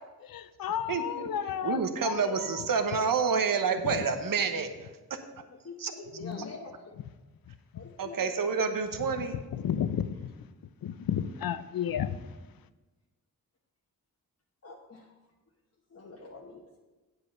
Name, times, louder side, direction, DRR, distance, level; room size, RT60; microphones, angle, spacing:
voice 1, 0.3-2.4 6.2-6.5 6.9-7.0 7.7-7.8 9.6-10.3 10.8-12.2, left 9 dB, 70° left, 14 dB, 0.6 m, -32 dB
voice 2, 0.9-1.3 1.6-4.9 5.8-5.9 8.0-9.4, right 5 dB, 65° right, 8 dB, 1.1 m, -28 dB
voice 3, 5.6-6.9 7.7-8.5 14.6-15.0 15.9-16.8, left 3 dB, 40° left, -2 dB, 1.2 m, -45 dB
8.1 x 8.0 x 5.4 m, 1.2 s
cardioid pair, 70°, 37 cm